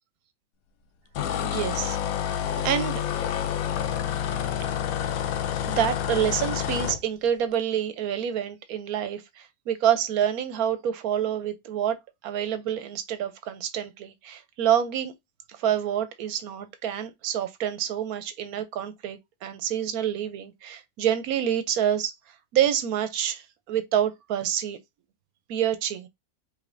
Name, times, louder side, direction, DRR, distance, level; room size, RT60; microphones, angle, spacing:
sound 1, 1.1-7.0, left 10 dB, 75° left, 1.0 m, -28 dB
voice 1, 1.4-2.0 2.3-3.0 5.7-12.0 12.2-15.1 15.6-22.1 22.5-24.8 25.5-26.1, right 10 dB, 80° right, 1.2 m, -27 dB
4.9 x 3.2 x 2.6 m
omnidirectional pair, 1.6 m